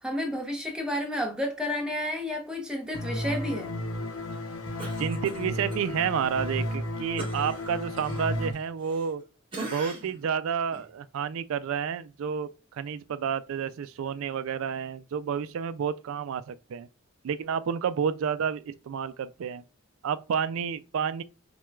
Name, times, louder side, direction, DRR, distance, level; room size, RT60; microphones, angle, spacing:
voice 1, 0.0-3.7, left 1 dB, 5° right, 0.7 m, -31 dB
sound 1, 2.9-8.5, left 1 dB, 85° left, 0.8 m, -33 dB
Cough, 4.8-5.8 6.2-6.4 7.2-9.2 9.5-10.2 10.7-10.9, right 2 dB, 25° right, 1.4 m, -40 dB
voice 2, 5.0-9.2 9.6-16.9 17.2-19.6 20.0-21.2, right 7 dB, 70° right, 0.3 m, -30 dB
5.9 x 2.2 x 2.3 m
head